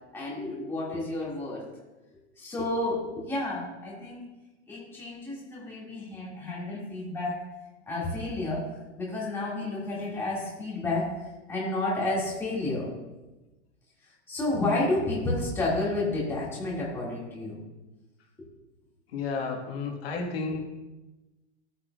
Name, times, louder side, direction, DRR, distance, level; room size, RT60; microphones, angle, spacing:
voice 1, 0.1-1.6 2.4-4.2 4.7-7.4 7.9-8.7 9.0-11.1 11.5-12.9 14.3-17.6, left 2 dB, 5° left, -6 dB, 1.8 m, -30 dB
voice 2, 19.1-20.6, left 4 dB, 55° left, 1 dB, 1.4 m, -32 dB
13.5 x 8.6 x 2.2 m, 1.1 s
supercardioid pair, 175°, 36 cm